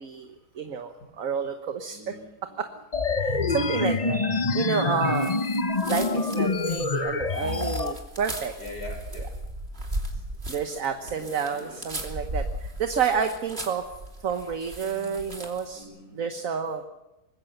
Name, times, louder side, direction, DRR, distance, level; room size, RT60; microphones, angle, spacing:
voice 1, 0.0-2.1 2.6-2.7 3.1-4.2 4.5-5.3 5.9-8.5 10.5-13.8 14.2-15.9 16.1-16.8, right 6 dB, 55° right, 6 dB, 1.5 m, -30 dB
voice 2, 1.9-2.6 7.3-7.5 8.6-9.3 10.1-10.2 10.7-12.0 14.8-15.3 15.5-16.2, left 2 dB, 75° left, 3 dB, 6.6 m, -45 dB
sound 1, 2.9-7.9, left 3 dB, 30° left, 1.0 m, -26 dB
sound 2, 5.1-15.7, right 1 dB, 35° right, 3.2 m, -37 dB
25.0 x 20.5 x 6.7 m, 1.0 s
omnidirectional pair, 1.8 m